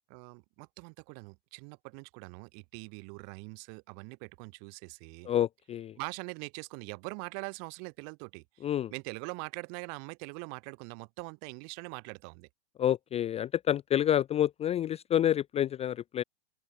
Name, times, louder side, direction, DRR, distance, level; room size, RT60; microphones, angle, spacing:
voice 1, 0.1-5.3 6.0-12.5, right 40 dB or more, 50° right, 3.5 m, -43 dB
voice 2, 5.3-6.0 8.6-8.9 12.8-16.2, left 11 dB, 20° left, 0.5 m, -28 dB
open air
hypercardioid pair, 110°, 34 cm